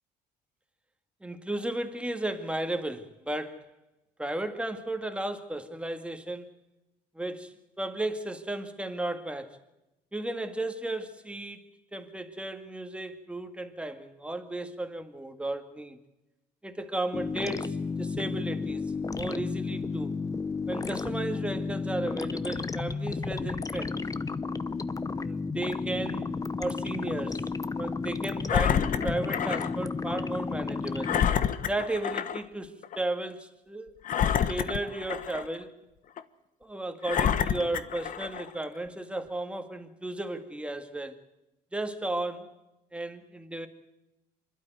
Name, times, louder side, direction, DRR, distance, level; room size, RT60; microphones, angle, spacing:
voice 1, 1.2-3.7 4.2-6.5 7.1-9.6 10.1-11.6 11.9-16.0 16.6-20.1 20.7-24.0 25.2-26.3 26.6-27.4 27.8-31.1 31.7-33.9 34.5-35.7 36.6-41.2 41.7-42.6 42.9-43.7, right 1 dB, 5° right, 2.0 m, -34 dB
sound 1, 17.1-31.3, left 4 dB, 20° left, 0.8 m, -32 dB
Engine, 28.5-29.7 30.2-30.3 31.0-32.4 32.8-33.0 34.0-35.6 36.2-36.3 37.0-38.5 39.2-39.3, left 8 dB, 50° left, 1.2 m, -28 dB
26.0 x 12.0 x 9.3 m
cardioid pair, 110°, 17 cm